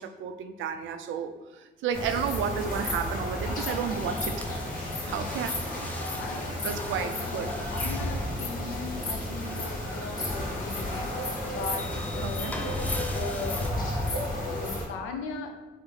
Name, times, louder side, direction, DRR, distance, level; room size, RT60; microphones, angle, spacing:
voice 1, 0.0-4.5 5.1-5.6 6.0-7.5 12.2-12.6, right 7 dB, 75° right, 8 dB, 0.4 m, -32 dB
sound 1, 1.9-14.9, left 1 dB, 45° left, 1.2 m, -32 dB
Elevator-ride, 3.7-13.7, left 1 dB, 10° left, 0.5 m, -41 dB
voice 2, 6.2-6.7 6.9-12.6 13.1-13.7 14.4-15.5, left 4 dB, 90° left, 4 dB, 0.6 m, -38 dB
4.2 x 2.0 x 3.8 m, 1.2 s
cardioid pair, 90°, 20 cm